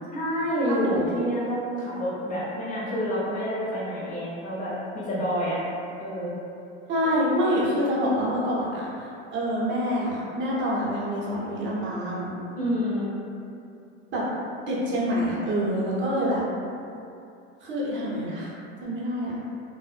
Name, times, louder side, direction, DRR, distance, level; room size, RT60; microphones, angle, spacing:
voice 1, 0.1-5.6 6.0-6.3 12.5-13.2, equal, 25° left, -8 dB, 0.6 m, -28 dB
voice 2, 0.7-1.1 6.9-12.3 14.1-14.3 14.7-16.4 17.6-18.5 18.8-19.4, equal, 35° right, -6 dB, 0.7 m, -26 dB
2.5 x 2.0 x 2.4 m, 2.6 s
supercardioid pair, 115°, 35 cm